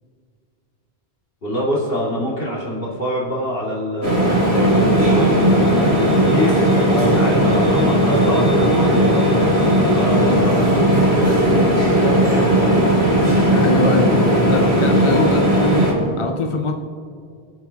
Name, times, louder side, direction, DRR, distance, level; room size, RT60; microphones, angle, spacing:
voice 1, 1.4-9.3 9.9-13.3, equal, 60° left, -5 dB, 2.7 m, -25 dB
sound 1, 4.0-15.9, right 1 dB, 85° right, 3.1 m, -16 dB
voice 2, 6.9-7.2 10.0-10.4 13.5-16.8, left 2 dB, 35° left, 5 dB, 0.6 m, -23 dB
23.0 x 7.9 x 2.9 m, 2.2 s
omnidirectional pair, 1.1 m